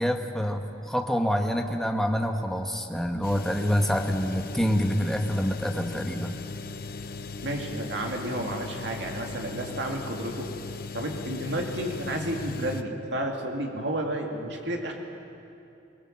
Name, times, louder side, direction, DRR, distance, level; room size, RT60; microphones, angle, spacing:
voice 1, 0.0-6.4, equal, ahead, 3 dB, 1.2 m, -27 dB
sound 1, 3.2-12.8, left 3 dB, 50° left, 0.8 m, -38 dB
voice 2, 7.4-10.5 10.9-14.9, right 1 dB, 65° right, 1 dB, 2.6 m, -31 dB
23.0 x 18.5 x 7.6 m, 2.7 s
head